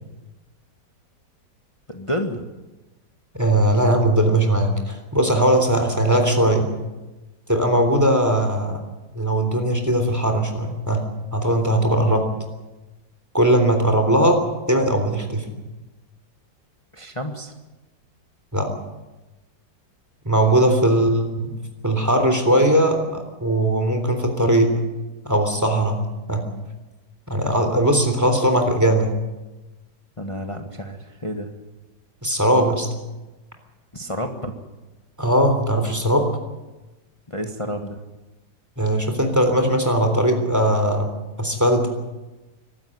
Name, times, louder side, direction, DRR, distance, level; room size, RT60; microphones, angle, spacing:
voice 1, 1.9-2.5 16.9-17.5 20.7-20.8 30.2-31.5 33.9-34.5 37.3-38.0, equal, 20° left, 4 dB, 1.4 m, -30 dB
voice 2, 3.4-6.7 7.5-8.8 9.1-11.0 11.3-12.3 13.3-15.5 18.5-18.7 20.2-21.5 21.8-24.7 25.2-26.0 26.3-26.4 27.3-29.1 32.2-32.9 35.2-36.3 38.8-41.9, right 1 dB, 10° right, 5 dB, 3.3 m, -19 dB
24.0 x 12.5 x 9.7 m, 1.1 s
omnidirectional pair, 2.0 m